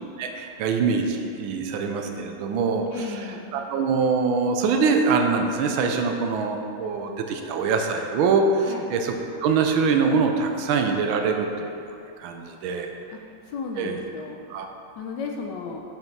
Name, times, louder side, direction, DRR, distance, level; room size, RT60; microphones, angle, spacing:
voice 1, 0.2-9.1 9.4-11.7 12.2-12.9 13.8-14.0 14.5-14.7, right 5 dB, 80° right, 4 dB, 1.4 m, -24 dB
voice 2, 2.9-3.6 8.7-8.9 13.1-13.2 13.5-14.5 15.0-15.8, left 5 dB, 75° left, 2 dB, 1.1 m, -34 dB
7.0 x 5.5 x 4.6 m, 2.6 s
omnidirectional pair, 2.2 m